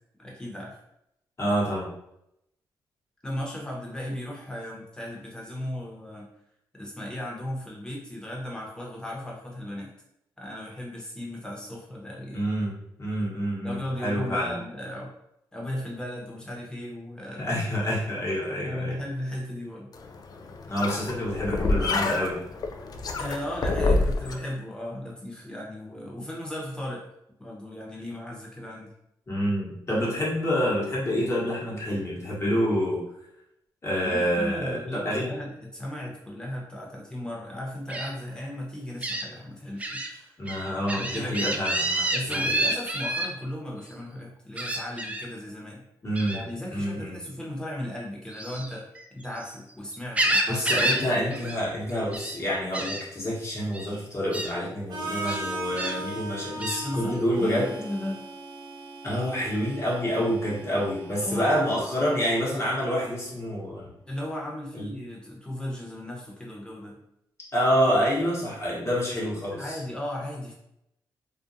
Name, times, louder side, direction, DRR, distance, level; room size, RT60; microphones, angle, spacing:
voice 1, 0.2-0.8 3.2-6.3 6.7-9.9 10.4-12.5 13.6-15.1 15.5-17.5 18.6-19.9 23.2-27.1 27.4-28.9 34.0-40.4 41.0-41.6 42.1-45.8 46.3-48.9 49.2-51.5 56.8-58.2 61.2-61.5 64.1-67.0 69.5-70.5, left 1 dB, 10° left, -3 dB, 0.9 m, -36 dB
voice 2, 1.4-1.9 12.3-14.6 17.4-19.0 20.7-22.4 29.3-33.0 33.8-35.2 40.4-42.6 46.0-46.4 46.7-47.2 50.5-57.7 59.0-63.9 64.7-64.9 67.5-69.8, equal, 35° left, -5 dB, 1.1 m, -27 dB
sound 1, 19.9-24.3, left 2 dB, 50° left, 0.3 m, -27 dB
Gull seagull, 37.9-38.1 39.0-39.2 39.8-40.1 40.5-43.3 44.6-45.3 46.2-46.4 48.3-49.5 49.9-51.1 51.3-51.6 51.9-52.4 52.7-53.0 53.7-53.9 54.3-54.5 55.3-56.0 56.6-56.8, right 1 dB, 15° right, 0.4 m, -28 dB
Harmonica, 54.9-62.8, right 2 dB, 60° right, 0.7 m, -38 dB
2.5 x 2.2 x 2.7 m, 0.80 s
cardioid pair, 60°, 8 cm